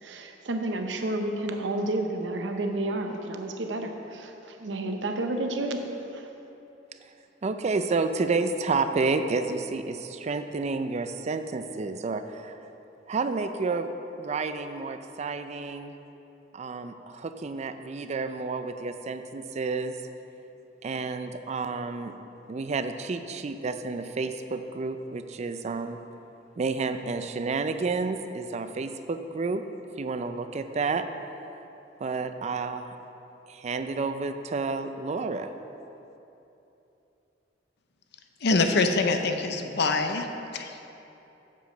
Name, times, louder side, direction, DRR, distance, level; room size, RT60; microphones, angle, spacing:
voice 1, 0.0-6.3, right 2 dB, 75° right, 5 dB, 0.7 m, -31 dB
voice 2, 7.4-12.5 13.1-13.9 14.2-15.9 16.5-20.0 20.8-22.1 22.5-26.0 26.6-29.6 30.0-31.1 32.0-32.9 33.5-35.5, right 4 dB, 40° right, 9 dB, 0.4 m, -30 dB
voice 3, 38.4-40.3 40.5-40.8, left 3 dB, 65° left, 6 dB, 0.6 m, -24 dB
7.7 x 5.1 x 6.5 m, 2.9 s
head